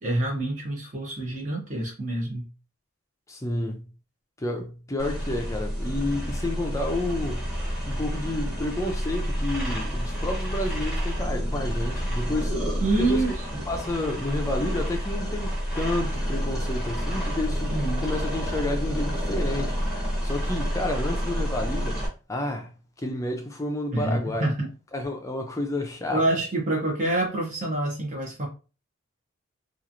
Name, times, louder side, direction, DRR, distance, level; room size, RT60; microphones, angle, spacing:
voice 1, 0.0-2.5 12.8-13.6 17.7-18.1 23.9-24.7 26.1-28.5, right 2 dB, 35° right, 0.8 m, -27 dB
voice 2, 3.3-3.9 4.4-7.5 7.9-13.2 13.7-17.7 18.0-19.8 20.2-22.0 22.3-22.7 23.0-24.5 24.9-26.2, left 1 dB, 15° left, 0.4 m, -30 dB
sound 1, 5.0-22.1, equal, 5° right, 1.0 m, -29 dB
3.0 x 2.4 x 2.5 m
head